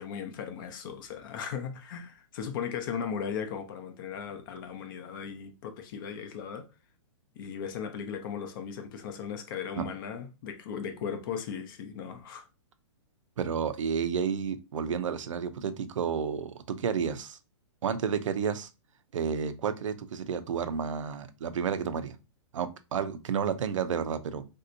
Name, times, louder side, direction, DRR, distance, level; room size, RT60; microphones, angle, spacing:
voice 1, 0.0-6.7 7.3-12.5, left 7 dB, 45° left, 0.6 m, -37 dB
voice 2, 13.4-17.4 17.8-18.7 19.1-22.1 22.5-24.5, right 7 dB, 80° right, 0.5 m, -31 dB
3.3 x 2.7 x 2.6 m
hypercardioid pair, 150°, 16 cm